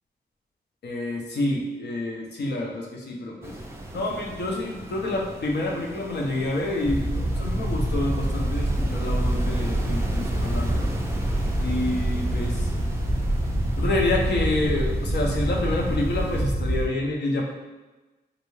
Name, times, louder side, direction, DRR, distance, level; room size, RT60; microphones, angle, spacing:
voice 1, 0.8-3.6 3.9-10.9 11.6-12.7 13.8-17.5, left 2 dB, 85° left, -1 dB, 0.7 m, -28 dB
sound 1, 3.4-16.5, right 1 dB, 15° right, 0.3 m, -37 dB
sound 2, 6.9-16.8, right 1 dB, 30° left, 1.2 m, -26 dB
3.9 x 2.3 x 3.1 m, 1.2 s
wide cardioid pair, 180°, 17 cm